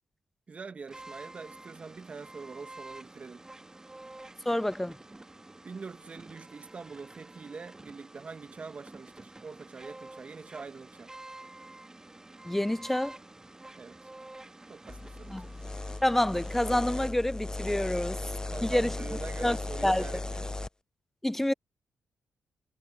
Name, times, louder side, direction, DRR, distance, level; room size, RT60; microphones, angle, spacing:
voice 1, 0.5-3.4 5.6-11.1 13.7-14.0 14.7-15.5 18.5-20.5, right 4 dB, 45° right, 1.8 m, -44 dB
sound 1, 0.9-17.1, right 2 dB, 20° right, 2.0 m, -49 dB
voice 2, 4.5-5.0 12.5-13.2 15.3-15.5 16.0-18.2 18.6-18.9 19.4-19.6 19.8-20.1 21.2-21.5, left 1 dB, 10° left, 0.5 m, -27 dB
sound 2, 14.9-20.7, left 2 dB, 25° left, 0.9 m, -37 dB
supercardioid pair, 45°, 3 cm